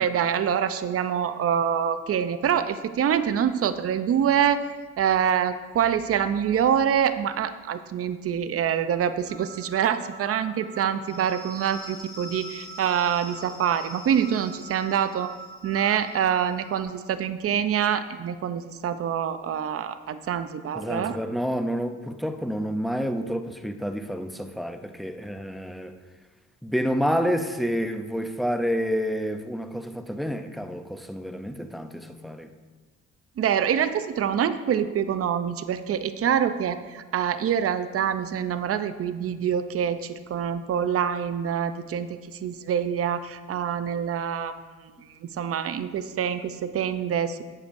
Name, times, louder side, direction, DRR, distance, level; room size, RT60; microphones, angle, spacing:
voice 1, 0.0-4.6 5.0-15.3 15.6-21.2 33.4-44.6 45.2-47.5, right 8 dB, 50° right, 0.6 m, -25 dB
sound 1, 9.3-16.8, right 2 dB, 20° left, 3.5 m, -43 dB
voice 2, 20.7-26.0 26.6-32.5, equal, ahead, 0.6 m, -29 dB
17.5 x 7.0 x 2.6 m
cardioid pair, 90°, 30 cm